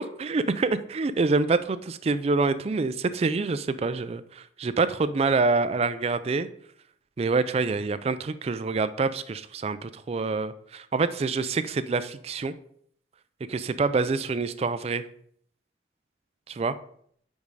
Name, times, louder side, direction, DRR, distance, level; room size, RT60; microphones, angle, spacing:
voice 1, 0.0-6.5 7.2-12.5 13.5-15.0 16.5-16.7, right 3 dB, 35° right, 12 dB, 0.3 m, -26 dB
5.3 x 5.1 x 4.7 m, 0.64 s
head